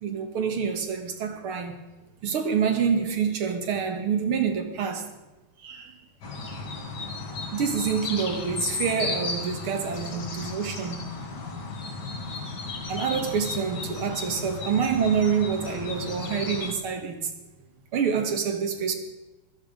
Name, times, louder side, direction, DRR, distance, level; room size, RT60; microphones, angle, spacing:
voice 1, 0.0-1.7 2.2-5.1 5.6-6.0 7.5-11.5 12.9-17.3 17.9-19.0, right 6 dB, 85° right, 6 dB, 2.5 m, -27 dB
sound 1, 6.2-16.7, left 3 dB, 55° left, 2.3 m, -34 dB
15.5 x 13.0 x 5.2 m, 1.1 s
omnidirectional pair, 2.3 m